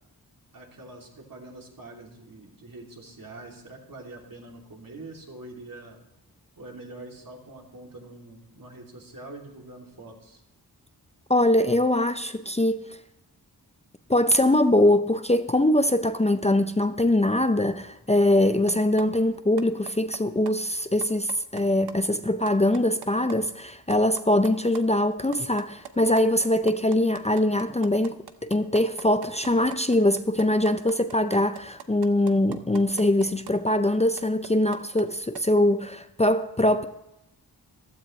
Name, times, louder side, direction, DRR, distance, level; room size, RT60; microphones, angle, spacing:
voice 1, 0.5-6.0 6.6-10.4, right 2 dB, 60° right, 3.0 m, -44 dB
voice 2, 11.3-12.8 14.1-28.2 28.4-36.9, left 1 dB, 15° left, 0.6 m, -22 dB
sound 1, 18.7-19.0 19.3-20.2 20.5-20.6 20.8-21.6 21.9-22.0 22.3-23.3 23.6-23.7 23.9-24.8 25.1-33.5 33.9-35.1 35.3-35.4, right 8 dB, 80° right, 0.8 m, -40 dB
15.0 x 12.5 x 3.2 m
wide cardioid pair, 80°, 38 cm